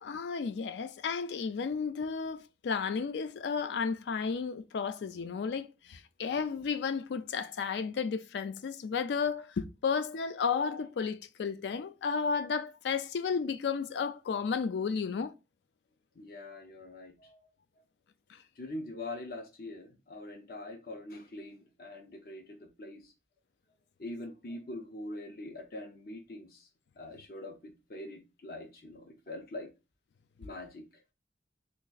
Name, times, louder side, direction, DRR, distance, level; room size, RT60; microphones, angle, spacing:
voice 1, 0.0-15.3, left 5 dB, 80° left, 0.4 m, -33 dB
voice 2, 16.1-17.4 18.6-23.1 24.0-26.7 27.0-29.7 30.4-30.8, left 1 dB, 55° left, 0.8 m, -43 dB
3.1 x 2.5 x 3.8 m
head